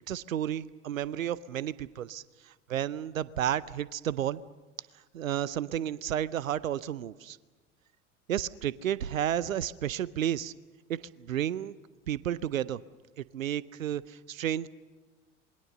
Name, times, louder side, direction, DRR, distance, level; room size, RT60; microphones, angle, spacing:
voice 1, 0.1-4.4 5.1-7.4 8.3-10.5 10.9-11.7 12.1-12.8 13.2-14.7, right 10 dB, 80° right, 20 dB, 0.7 m, -32 dB
27.0 x 21.5 x 6.6 m, 1.3 s
figure-of-eight pair, 75°, 40 cm